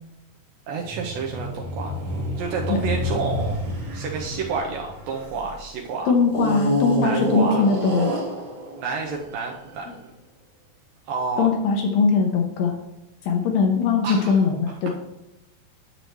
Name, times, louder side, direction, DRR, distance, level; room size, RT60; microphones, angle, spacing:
voice 1, 0.7-2.1 2.4-3.6 3.9-6.1 7.0-7.7 8.8-10.1 11.1-11.5 14.0-14.4, right 4 dB, 75° right, 0 dB, 2.3 m, -29 dB
sound 1, 0.8-5.5 6.3-9.7, equal, 40° right, 1.5 m, -28 dB
voice 2, 6.1-8.1 11.4-12.8 13.3-14.9, left 5 dB, 75° left, 2 dB, 2.4 m, -20 dB
10.0 x 6.8 x 3.1 m, 0.91 s
omnidirectional pair, 4.4 m